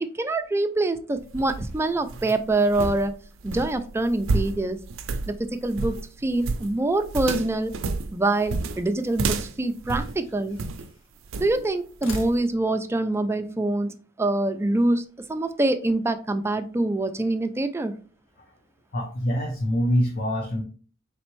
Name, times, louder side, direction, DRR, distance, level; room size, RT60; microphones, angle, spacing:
voice 1, 0.0-3.1 3.4-4.8 5.3-7.7 8.1-10.6 11.4-15.0 15.3-17.9, right 2 dB, 15° right, 9 dB, 0.3 m, -25 dB
sound 1, 1.2-10.9 11.3-11.7 12.1-12.4, right 3 dB, 85° right, 0.5 m, -31 dB
sound 2, 8.4-9.2 10.1-11.2 11.8-12.9, left 2 dB, 85° left, 0.8 m, -45 dB
voice 2, 18.9-20.6, equal, 50° left, 0 dB, 0.8 m, -24 dB
4.2 x 3.3 x 3.1 m, 0.40 s
head